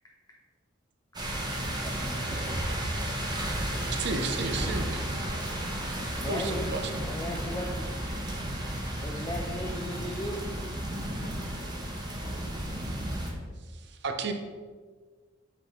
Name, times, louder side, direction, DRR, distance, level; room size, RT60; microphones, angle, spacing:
sound 1, 1.1-13.3, right 1 dB, 20° right, 0.8 m, -33 dB
voice 1, 1.5-3.8, right 1 dB, 45° left, -2 dB, 1.5 m, -52 dB
Creepy door, 1.8-3.1 7.2-10.5, equal, 65° left, 1.4 m, -49 dB
voice 2, 3.9-5.1 6.3-7.1 13.7-14.3, right 3 dB, 60° right, 5 dB, 0.6 m, -33 dB
voice 3, 6.2-6.6 6.9-7.9 9.0-10.4 12.2-13.4, equal, 20° left, -2 dB, 0.5 m, -37 dB
8.1 x 4.0 x 3.0 m, 1.5 s
head